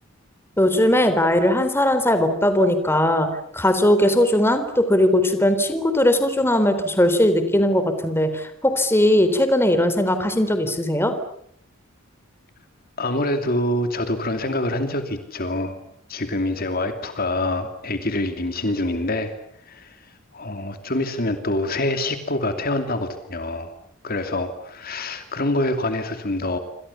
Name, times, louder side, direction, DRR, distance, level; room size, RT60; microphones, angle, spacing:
voice 1, 0.6-3.3 3.5-11.1, left 1 dB, 10° left, 9 dB, 3.8 m, -19 dB
voice 2, 13.0-15.8 16.1-19.3 19.7-20.0 20.3-23.7 24.0-26.6, left 1 dB, 45° left, 7 dB, 2.7 m, -25 dB
28.0 x 27.0 x 7.1 m, 0.68 s
head